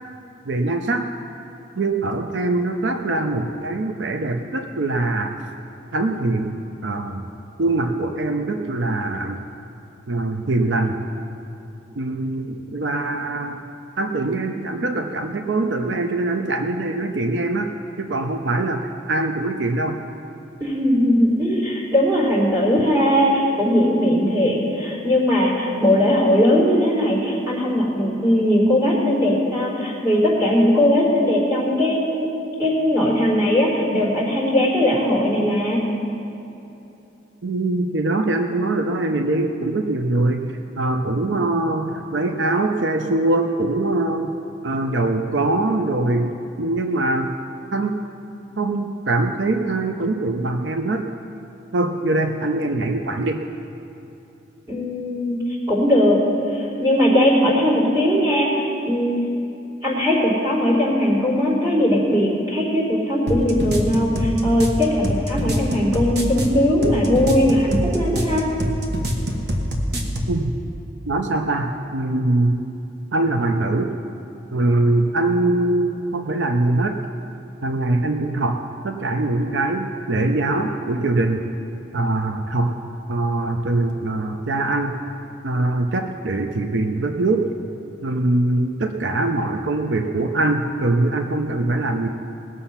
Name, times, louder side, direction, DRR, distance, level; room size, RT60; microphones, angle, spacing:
voice 1, 0.5-1.1 1.8-5.4 5.9-6.5 6.8-7.3 7.6-9.4 10.1-11.0 12.0-13.6 14.0-17.7 18.0-20.0 37.4-40.5 40.8-44.3 44.6-47.3 47.7-48.0 48.6-51.1 51.7-53.4 70.3-70.5 71.1-72.6 73.1-73.9 74.5-77.0 77.6-81.5 81.9-82.7 83.1-85.0 85.4-87.5 88.0-92.1, right 2 dB, 80° right, 5 dB, 0.7 m, -22 dB
voice 2, 20.6-32.3 32.6-35.9 54.7-55.4 55.7-56.2 56.5-59.2 59.8-68.5, left 1 dB, 25° right, -8 dB, 3.6 m, -19 dB
sound 1, 63.3-70.4, equal, 60° right, 1.4 m, -24 dB
19.0 x 7.0 x 5.7 m, 2.9 s
head